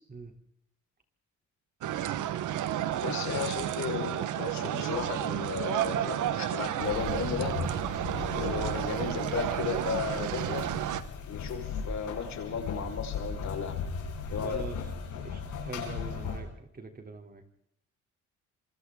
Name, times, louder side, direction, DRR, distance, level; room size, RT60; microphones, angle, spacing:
sound 1, 1.8-11.0, right 11 dB, 80° right, 1.3 m, -31 dB
voice 1, 3.0-7.5 8.3-10.7 11.3-13.8 14.3-14.6, left 7 dB, 65° left, 3 dB, 4.9 m, -35 dB
sound 2, 6.8-16.4, left 5 dB, 85° left, 6.6 m, -37 dB
voice 2, 14.4-14.8 15.2-17.4, right 4 dB, 30° right, 5 dB, 3.3 m, -43 dB
27.0 x 25.0 x 3.8 m, 0.71 s
cardioid pair, 90°, 30 cm